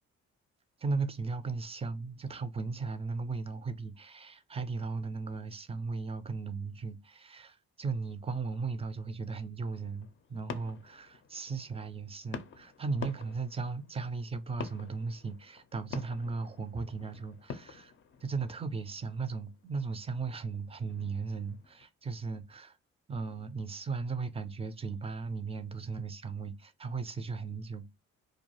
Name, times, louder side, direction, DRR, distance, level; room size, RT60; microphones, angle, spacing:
voice 1, 0.8-17.9 18.2-22.8 23.1-27.9, right 4 dB, 20° right, 0.4 m, -36 dB
sound 1, 9.7-21.9, left 6 dB, 40° left, 0.5 m, -48 dB
2.3 x 2.2 x 2.9 m
cardioid pair, 90°, 30 cm